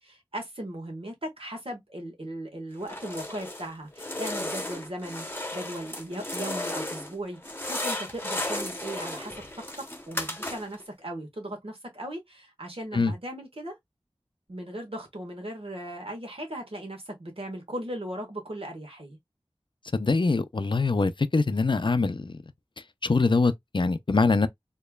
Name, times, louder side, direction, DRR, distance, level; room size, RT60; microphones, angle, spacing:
voice 1, 0.0-13.8 14.5-19.2, right 1 dB, 65° right, 1.7 m, -38 dB
sound 1, 2.8-3.7 4.0-7.1 7.4-10.8, left 1 dB, 20° left, 1.0 m, -34 dB
voice 2, 19.9-22.4 23.0-24.5, left 3 dB, 50° left, 0.5 m, -23 dB
4.4 x 2.9 x 2.3 m
wide cardioid pair, 50°, 10 cm